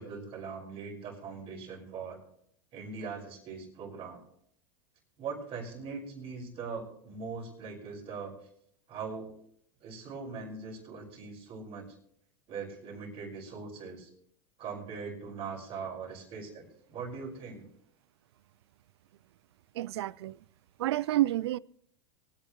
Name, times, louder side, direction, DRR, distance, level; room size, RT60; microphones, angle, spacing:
voice 1, 0.0-2.2 2.7-4.2 5.2-8.3 8.9-9.3 9.8-12.0 12.5-14.1 14.6-16.6 16.9-17.7, right 5 dB, 45° right, 5.3 m, -41 dB
voice 2, 19.7-20.4 20.8-21.6, right 15 dB, 80° right, 0.4 m, -29 dB
24.5 x 8.9 x 3.0 m
hypercardioid pair, 105°, 14 cm